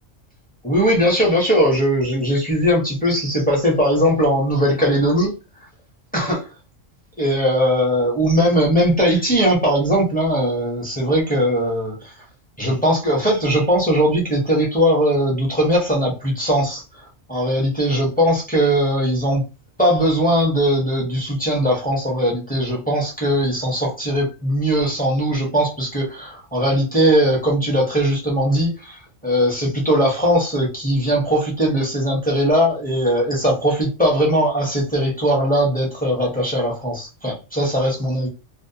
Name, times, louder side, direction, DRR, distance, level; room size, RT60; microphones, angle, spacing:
voice 1, 0.6-5.3 6.1-6.4 7.2-12.1 12.6-16.8 17.3-19.5 19.8-38.3, equal, 10° left, 0.5 m, -19 dB
2.5 x 2.1 x 2.6 m
omnidirectional pair, 1.3 m